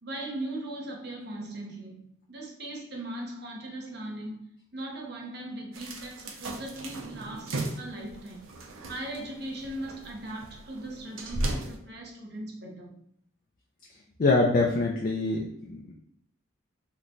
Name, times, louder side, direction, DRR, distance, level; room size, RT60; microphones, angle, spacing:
voice 1, 0.0-4.4 4.7-8.4 8.9-12.9, right 1 dB, 55° right, 0 dB, 0.8 m, -39 dB
sound 1, 5.7-11.8, right 2 dB, 85° right, 0.6 m, -37 dB
voice 2, 14.2-15.9, left 3 dB, 45° left, -1 dB, 0.4 m, -25 dB
3.1 x 2.2 x 3.8 m, 0.69 s
head